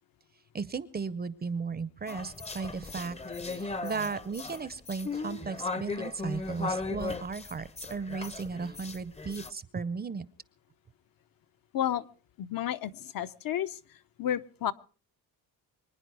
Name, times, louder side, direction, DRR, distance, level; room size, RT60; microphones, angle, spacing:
voice 1, 0.5-3.2 3.4-10.2, right 5 dB, 25° right, 16 dB, 0.6 m, -36 dB
sound 1, 2.1-9.5, left 3 dB, 15° left, 0.6 m, -37 dB
voice 2, 11.7-12.1 12.4-13.8 14.2-14.7, left 11 dB, 60° left, 11 dB, 0.8 m, -31 dB
25.0 x 9.9 x 4.7 m, 0.40 s
cardioid pair, 125°, 39 cm